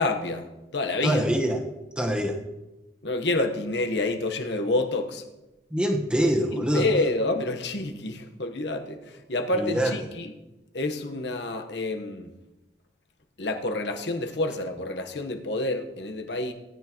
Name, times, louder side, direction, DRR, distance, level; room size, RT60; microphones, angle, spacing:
voice 1, 0.0-1.2 3.0-5.2 6.5-10.3 10.7-12.3 13.4-16.5, left 2 dB, 80° left, 5 dB, 1.2 m, -28 dB
voice 2, 1.0-1.6 2.0-2.4 5.7-6.9 9.5-9.9, equal, 5° right, 1 dB, 1.3 m, -24 dB
18.0 x 10.0 x 3.0 m, 1.0 s
head